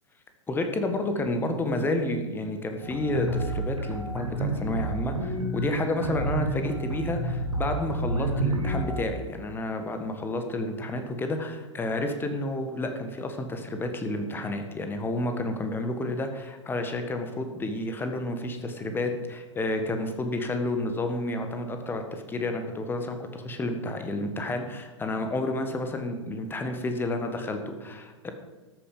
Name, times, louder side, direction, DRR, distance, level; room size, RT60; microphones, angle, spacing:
voice 1, 0.5-28.3, left 2 dB, 15° left, 6 dB, 1.6 m, -30 dB
sound 1, 2.8-9.0, right 1 dB, 85° right, 2.7 m, -29 dB
13.5 x 8.4 x 5.5 m, 1.3 s
figure-of-eight pair, 100°, 16 cm